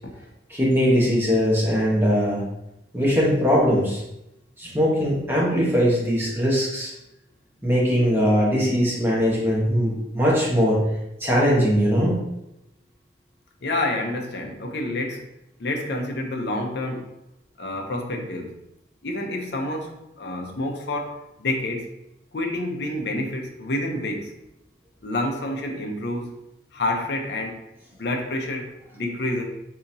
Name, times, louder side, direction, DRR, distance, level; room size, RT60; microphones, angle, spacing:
voice 1, 0.5-2.4 2.9-4.0 4.6-6.9 7.6-10.8 11.2-12.2, equal, 10° right, -5 dB, 0.9 m, -20 dB
voice 2, 13.6-15.3 15.6-17.1 17.6-18.5 19.0-21.9 22.3-24.3 25.0-26.3 26.7-27.6 28.0-29.4, left 1 dB, 60° left, 2 dB, 0.6 m, -28 dB
3.9 x 2.8 x 2.6 m, 0.88 s
head